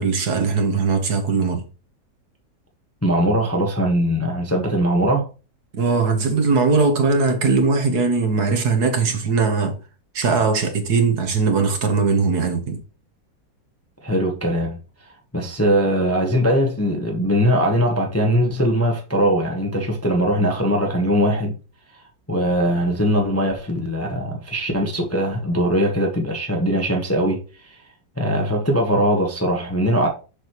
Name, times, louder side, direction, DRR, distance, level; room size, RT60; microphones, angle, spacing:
voice 1, 0.0-1.6 5.7-9.8 10.1-12.8, right 4 dB, 60° right, 1.8 m, -20 dB
voice 2, 3.0-5.3 14.0-21.5 22.3-27.8 28.2-30.1, equal, 10° left, 0.9 m, -21 dB
6.8 x 6.3 x 3.0 m
omnidirectional pair, 2.0 m